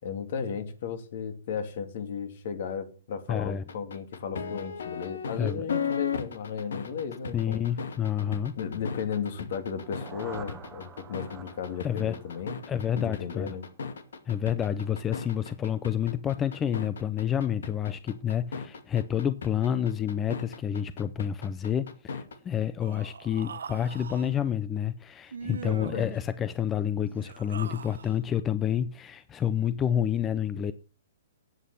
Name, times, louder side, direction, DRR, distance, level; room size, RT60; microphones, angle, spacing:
voice 1, 0.0-7.6 8.6-12.6 12.9-13.7 25.7-26.1, left 6 dB, 55° left, 2.6 m, -35 dB
voice 2, 3.3-3.6 5.4-5.7 7.3-8.6 11.8-12.2 12.7-13.5 14.3-30.7, left 9 dB, 15° left, 0.5 m, -29 dB
sound 1, 3.7-22.4, left 6 dB, 80° left, 2.2 m, -36 dB
sound 2, 9.6-13.5, right 7 dB, 15° right, 1.1 m, -48 dB
Human voice, 22.8-24.3 25.3-26.2 27.1-28.2, right 6 dB, 85° right, 0.8 m, -41 dB
11.5 x 8.4 x 6.9 m
hypercardioid pair, 155°, 0 cm